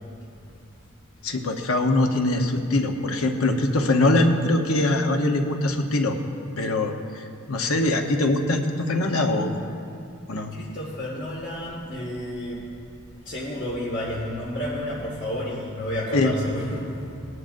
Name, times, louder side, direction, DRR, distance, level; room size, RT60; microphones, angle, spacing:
voice 1, 1.2-6.2 6.6-9.5 10.3-10.5 16.1-16.3, left 2 dB, 80° left, 4 dB, 1.0 m, -22 dB
voice 2, 10.5-12.6 13.3-17.2, left 1 dB, 55° left, -6 dB, 2.0 m, -31 dB
19.0 x 11.0 x 2.7 m, 2.4 s
head